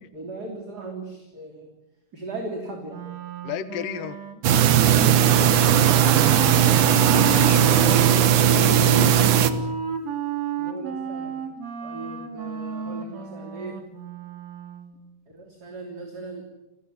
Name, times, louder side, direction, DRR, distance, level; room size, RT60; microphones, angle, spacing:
voice 1, 0.1-1.7 2.1-3.0 5.7-6.2 7.8-8.1 10.6-11.3 11.8-13.8 15.3-16.5, right 3 dB, 30° right, 3 dB, 3.5 m, -37 dB
Wind instrument woodwind instrument, 2.9-14.9, right 6 dB, 50° right, 4.0 m, -32 dB
voice 2, 3.4-4.2 7.1-8.1 8.5-9.1, left 9 dB, 80° left, 12 dB, 3.0 m, -34 dB
sound 1, 4.4-9.5, right 10 dB, 65° right, 2.7 m, -17 dB
30.0 x 18.0 x 9.4 m, 0.98 s
omnidirectional pair, 3.9 m